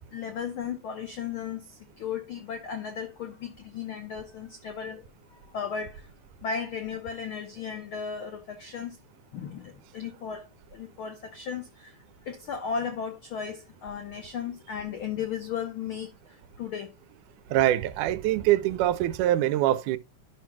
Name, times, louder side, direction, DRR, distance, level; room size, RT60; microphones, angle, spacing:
voice 1, 0.1-5.1 5.5-6.1 6.4-9.0 9.3-16.9, left 7 dB, 80° left, 1.1 m, -35 dB
voice 2, 17.5-20.0, right 13 dB, 90° right, 2.1 m, -24 dB
12.0 x 6.0 x 2.2 m
omnidirectional pair, 3.6 m